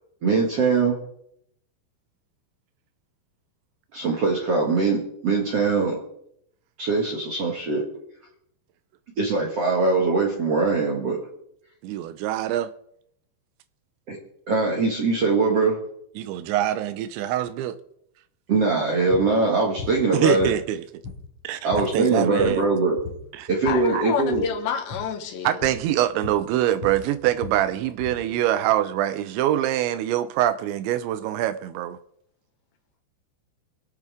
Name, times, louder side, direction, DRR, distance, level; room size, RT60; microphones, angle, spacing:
voice 1, 0.2-1.0 3.9-6.0 6.8-7.8 9.2-11.2 14.1-14.2 14.5-15.8 18.5-20.5 21.6-23.0 23.5-24.4, right 3 dB, 55° right, 1.8 m, -22 dB
voice 2, 11.8-12.7 16.2-17.8 20.1-20.8 21.4-22.6 23.3-23.5 23.9-24.0 25.4-32.0, right 12 dB, 80° right, 2.9 m, -24 dB
sound 1, 19.1-19.3 19.8-20.0 20.4-21.4 21.7-22.0 22.2-22.7 23.0-23.9 24.2-24.5 24.9-25.1 25.6-25.9 26.2-28.3, left 5 dB, 45° left, 2.3 m, -37 dB
voice 3, 23.7-25.6, left 7 dB, 75° left, 3.4 m, -28 dB
25.5 x 8.5 x 3.6 m
omnidirectional pair, 5.3 m